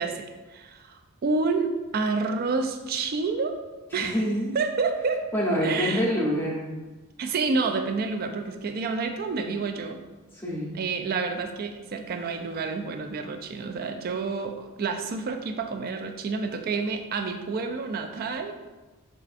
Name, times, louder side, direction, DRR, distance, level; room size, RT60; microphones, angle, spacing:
voice 1, 0.0-3.6 3.9-4.2 4.5-5.3 5.6-6.1 7.2-10.0 10.7-18.5, right 4 dB, 40° right, 6 dB, 0.3 m, -29 dB
voice 2, 3.9-4.5 5.3-6.6 10.3-10.7, equal, 10° left, -5 dB, 0.8 m, -26 dB
5.6 x 2.5 x 2.5 m, 1.2 s
head